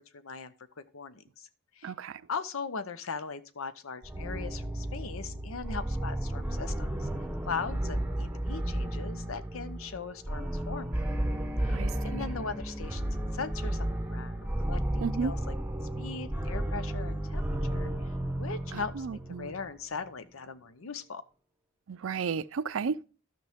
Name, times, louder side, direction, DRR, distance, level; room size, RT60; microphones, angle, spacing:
voice 1, 0.1-1.5 1.8-1.9 2.3-7.1 7.5-11.0 11.6-14.4 14.7-15.5 16.0-17.4 17.7-21.2, left 5 dB, 75° left, 0.7 m, -39 dB
voice 2, 1.8-2.2 11.7-11.9 15.0-15.3 18.7-19.5 21.9-23.0, right 5 dB, 70° right, 0.4 m, -33 dB
sound 1, 4.0-19.7, right 1 dB, 5° right, 0.8 m, -33 dB
12.0 x 6.1 x 3.5 m
head